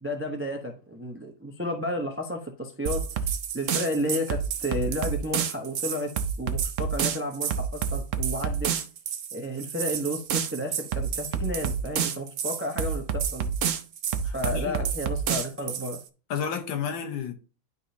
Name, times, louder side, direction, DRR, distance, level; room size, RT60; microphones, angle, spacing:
voice 1, 0.0-6.1 6.4-8.7 9.3-13.5 14.3-16.0, left 1 dB, 15° right, 0.4 m, -32 dB
sound 1, 2.9-16.0, right 7 dB, 65° right, 0.8 m, -29 dB
voice 2, 14.2-14.8 16.3-17.3, left 7 dB, 85° left, 1.8 m, -31 dB
11.5 x 4.1 x 2.8 m
omnidirectional pair, 2.0 m